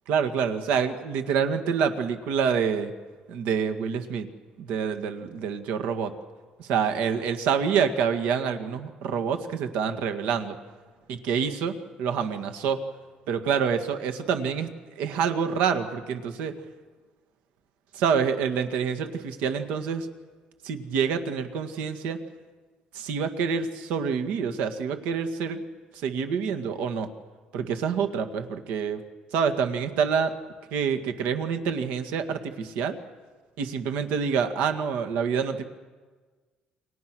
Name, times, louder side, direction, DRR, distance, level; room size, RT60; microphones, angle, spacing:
voice 1, 0.1-2.9 3.3-4.3 4.6-6.1 6.6-10.6 11.1-12.8 13.3-14.7 15.0-16.5 17.9-20.1 20.6-22.2 22.9-25.6 26.0-27.1 27.5-29.0 29.3-30.3 30.7-33.0 33.6-35.6, right 6 dB, 80° right, 7 dB, 1.9 m, -27 dB
29.0 x 24.0 x 6.3 m, 1.4 s
cardioid pair, 170°, 3 cm